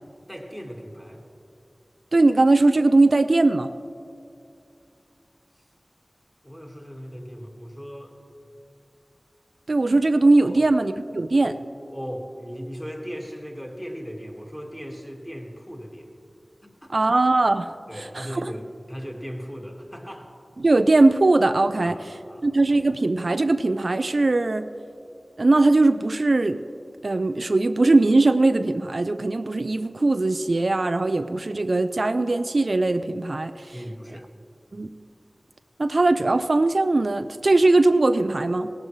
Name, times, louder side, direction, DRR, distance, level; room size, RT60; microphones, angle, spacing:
voice 1, 0.3-1.2 5.6-5.7 6.4-8.2 10.4-10.7 11.4-11.6 11.9-16.1 16.6-16.9 17.9-20.3 21.8-22.5 33.7-34.3, equal, 5° left, 1 dB, 1.7 m, -37 dB
voice 2, 2.1-3.7 9.7-11.5 16.9-18.5 20.6-22.0 22.4-24.7 25.4-26.6 27.0-33.7 34.7-34.9 35.8-38.7, right 2 dB, 65° right, 10 dB, 0.3 m, -20 dB
18.0 x 12.0 x 3.1 m, 2.6 s
wide cardioid pair, 50°, 0 cm